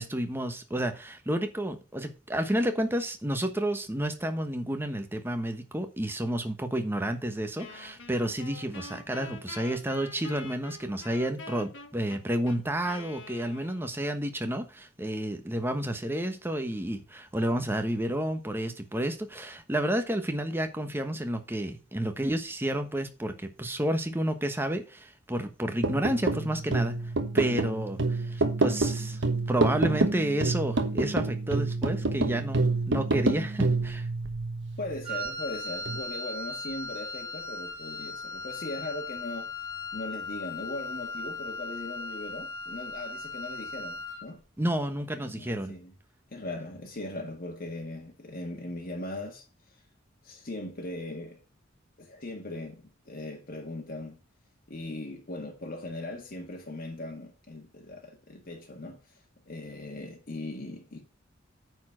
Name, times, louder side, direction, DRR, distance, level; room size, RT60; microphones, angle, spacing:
voice 1, 0.0-27.0 27.3-29.2 29.5-34.1 44.6-45.7, right 1 dB, 10° right, 1.1 m, -30 dB
Wind instrument woodwind instrument, 7.6-14.2, left 3 dB, 70° left, 1.8 m, -45 dB
sound 1, 25.8-35.3 35.9-36.0, right 3 dB, 65° right, 1.2 m, -28 dB
voice 2, 34.8-39.5 39.9-44.4 45.2-45.9 46.3-49.8 50.2-51.4 52.0-54.2 54.7-59.0 59.5-61.0, left 2 dB, 50° left, 1.7 m, -39 dB
Wind instrument woodwind instrument 2, 35.0-44.3, left 2 dB, 30° right, 3.6 m, -37 dB
9.4 x 4.4 x 5.9 m
head